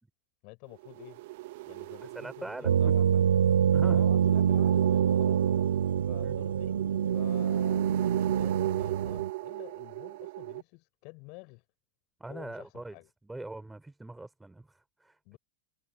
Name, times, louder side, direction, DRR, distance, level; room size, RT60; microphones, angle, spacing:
voice 1, 0.4-1.2 1.7-3.2 3.9-5.4 6.1-6.8 7.1-11.6 12.3-13.1 15.3-15.4, left 32 dB, 45° left, 7.4 m, -50 dB
sound 1, 0.7-10.6, right 20 dB, 50° right, 0.9 m, -38 dB
voice 2, 2.2-3.0 3.7-4.1 6.2-6.4 12.2-13.0 13.2-15.4, right 2 dB, 5° right, 5.3 m, -42 dB
sound 2, 2.6-9.3, right 8 dB, 65° right, 0.3 m, -25 dB
figure-of-eight pair, 90°, 0 cm